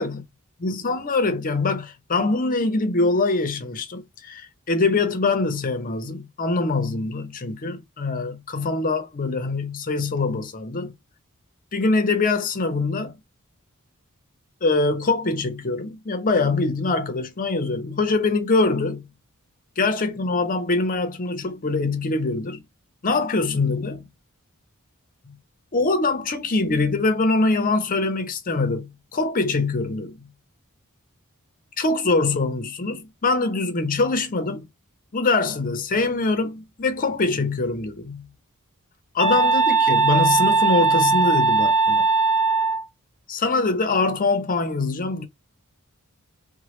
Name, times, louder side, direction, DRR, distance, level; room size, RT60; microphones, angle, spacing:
voice 1, 0.6-10.9 11.7-13.1 14.6-19.0 19.8-22.6 23.0-24.0 25.3-25.4 25.7-30.3 31.8-34.7 35.1-38.3 39.1-42.0 43.3-45.2, left 3 dB, 40° left, 0.6 m, -23 dB
sound 1, 39.2-42.8, right 4 dB, 60° right, 0.5 m, -19 dB
3.0 x 2.1 x 2.9 m
head